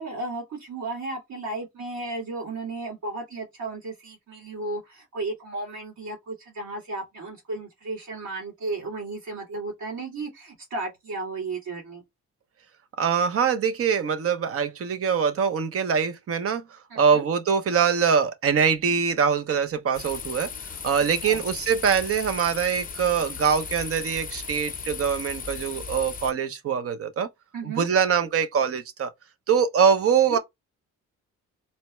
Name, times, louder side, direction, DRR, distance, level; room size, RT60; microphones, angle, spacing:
voice 1, 0.0-12.0 16.9-17.2 21.2-21.4 27.5-27.9 30.3-30.4, right 3 dB, 70° right, 2.4 m, -34 dB
voice 2, 13.0-16.6 17.0-20.5 20.8-27.3 27.6-29.1 29.5-30.4, right 7 dB, 50° right, 0.8 m, -23 dB
sound 1, 19.9-26.3, left 6 dB, 30° left, 0.7 m, -36 dB
4.3 x 2.2 x 3.0 m
cardioid pair, 90°, 30 cm